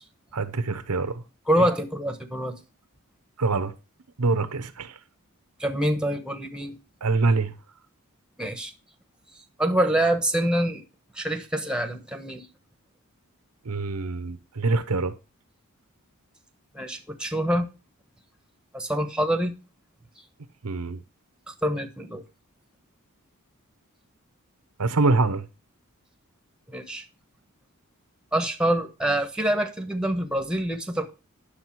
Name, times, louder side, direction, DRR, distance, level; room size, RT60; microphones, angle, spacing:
voice 1, 0.3-1.1 3.4-3.7 4.2-4.9 7.0-7.5 13.6-15.1 20.6-21.0 24.8-25.5, right 3 dB, 85° right, 0.9 m, -24 dB
voice 2, 1.5-2.5 5.6-6.7 8.4-8.7 9.6-10.8 11.1-12.5 16.7-17.7 18.7-19.5 21.5-22.2 26.7-27.0 28.3-31.1, right 1 dB, 5° right, 1.1 m, -25 dB
9.8 x 6.6 x 4.5 m
head